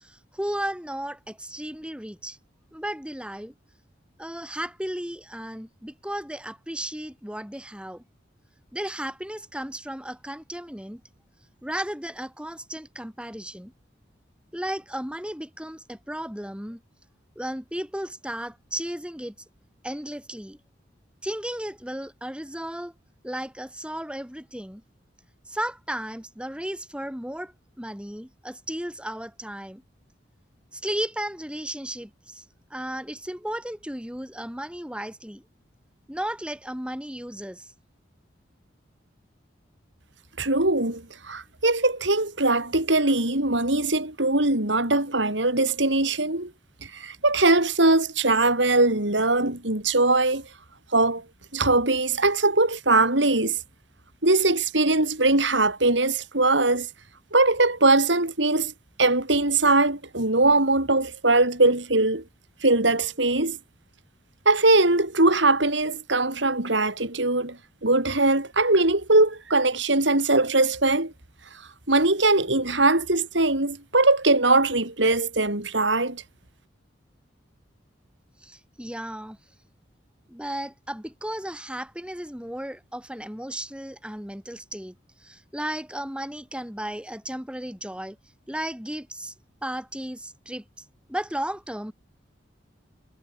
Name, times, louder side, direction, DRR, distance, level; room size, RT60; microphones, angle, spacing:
voice 1, 0.0-2.4 2.7-3.5 4.2-8.0 8.7-11.0 11.6-13.7 14.5-16.8 17.4-19.3 19.8-20.6 21.2-22.9 23.2-24.8 25.5-29.8 30.7-32.4 32.7-35.4 36.1-37.7 78.4-79.4 80.3-84.9 85.2-88.2 88.5-89.3 89.6-90.6 91.1-91.9, right 1 dB, 5° right, 6.2 m, -34 dB
voice 2, 40.4-46.5 46.9-50.4 50.9-51.2 51.5-53.6 54.2-56.9 57.3-58.7 59.0-62.2 62.6-63.6 64.5-67.6 67.8-71.1 71.9-76.2, right 2 dB, 75° right, 6.0 m, -21 dB
head